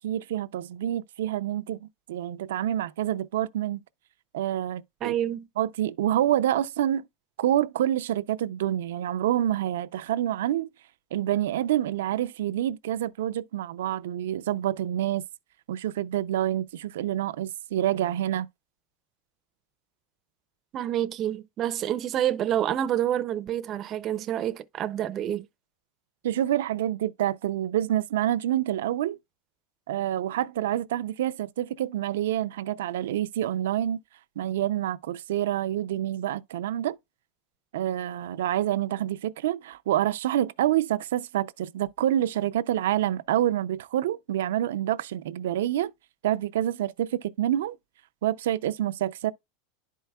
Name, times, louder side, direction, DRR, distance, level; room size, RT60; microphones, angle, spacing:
voice 1, 0.0-3.8 4.3-5.1 5.6-7.0 7.4-10.7 11.1-15.2 15.7-18.5 26.2-29.2 29.9-34.0 34.4-37.0 37.7-45.9 46.2-47.8 48.2-49.3, right 12 dB, 90° right, 0.4 m, -27 dB
voice 2, 5.0-5.5 20.7-25.5, right 11 dB, 30° right, 0.4 m, -28 dB
11.0 x 4.6 x 2.2 m
supercardioid pair, 160°, 0 cm